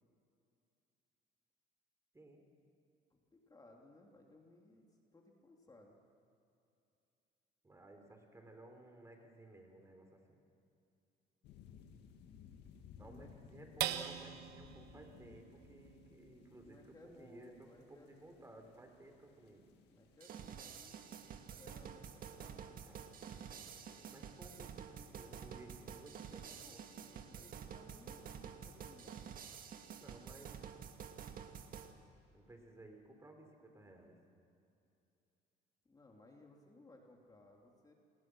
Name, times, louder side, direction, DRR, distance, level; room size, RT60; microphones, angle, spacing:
voice 1, 3.1-6.0 13.0-13.6 16.6-18.1 19.9-21.2 21.6-22.8 26.9-29.4 35.8-37.9, left 2 dB, 20° left, 0 dB, 3.0 m, -61 dB
voice 2, 7.6-10.4 13.0-19.7 22.9-23.0 23.3-26.8 30.0-30.5 32.3-34.2, right 1 dB, 15° right, 4 dB, 3.9 m, -57 dB
sound 1, 11.4-20.5, left 7 dB, 85° left, 1.9 m, -60 dB
sound 2, 13.8-20.5 21.0-21.1 21.5-22.0, right 12 dB, 80° right, 1.1 m, -46 dB
sound 3, 20.2-31.9, right 7 dB, 55° right, 1.9 m, -50 dB
28.5 x 20.5 x 6.3 m, 2.7 s
cardioid pair, 110°, 17 cm